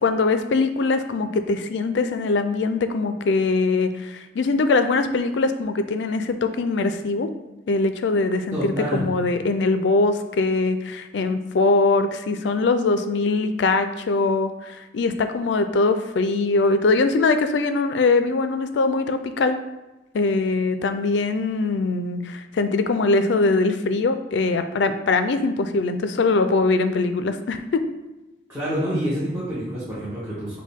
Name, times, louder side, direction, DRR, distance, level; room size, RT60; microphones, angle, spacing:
voice 1, 0.0-7.3 7.7-19.6 20.1-27.8, left 3 dB, 70° left, 9 dB, 0.4 m, -22 dB
voice 2, 8.5-9.1 28.5-30.6, equal, 15° right, -10 dB, 1.0 m, -27 dB
6.3 x 2.2 x 3.5 m, 1.0 s
head